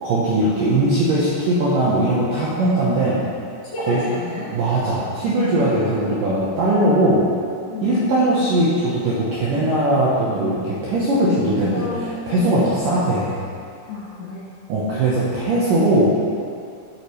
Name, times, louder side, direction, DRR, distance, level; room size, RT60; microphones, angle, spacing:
voice 1, 0.0-3.2 3.8-4.0 4.5-7.2 7.8-13.4 14.7-16.1, right 1 dB, 75° right, -8 dB, 2.1 m, -19 dB
voice 2, 3.7-4.5 7.6-8.0 11.7-12.7 13.9-14.5, left 3 dB, 65° left, -11 dB, 3.2 m, -31 dB
8.4 x 8.2 x 3.2 m, 2.4 s
omnidirectional pair, 5.0 m